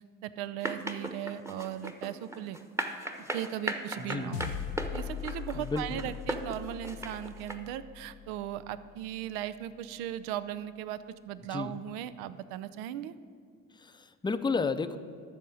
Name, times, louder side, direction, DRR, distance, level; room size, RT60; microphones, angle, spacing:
voice 1, 0.2-2.6 3.2-4.5 4.9-13.1, right 11 dB, 75° right, 14 dB, 0.6 m, -38 dB
sound 1, 0.6-7.5, right 1 dB, 5° right, 1.0 m, -36 dB
voice 2, 4.0-4.3 5.5-6.1 11.5-11.8 13.7-15.0, left 4 dB, 10° left, 10 dB, 0.5 m, -32 dB
sound 2, 4.3-8.9, left 9 dB, 80° left, 0.6 m, -41 dB
12.5 x 4.2 x 7.5 m, 2.1 s
hypercardioid pair, 50°, 38 cm